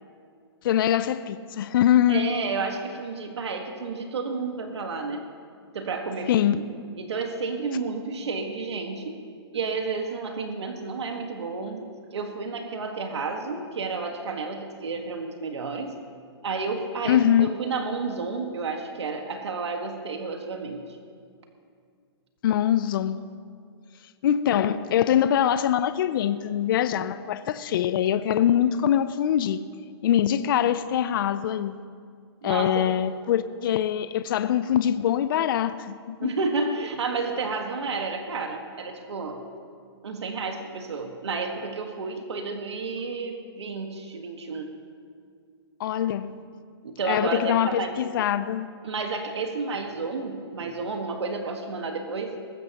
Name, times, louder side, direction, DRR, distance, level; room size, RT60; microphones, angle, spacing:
voice 1, 0.6-2.3 6.3-6.6 17.1-17.5 22.4-23.2 24.2-29.6 30.0-31.8 32.4-36.3 45.8-46.3 47.1-48.7, left 10 dB, 55° left, 0.5 m, -23 dB
voice 2, 2.1-5.2 5.7-6.6 7.0-9.2 9.5-11.8 12.1-16.0 16.4-20.8 32.4-32.9 36.2-39.4 40.0-44.7 46.8-47.9 48.8-52.4, right 4 dB, 85° right, 1.6 m, -31 dB
20.0 x 15.5 x 3.0 m
hypercardioid pair, 150°, 14 cm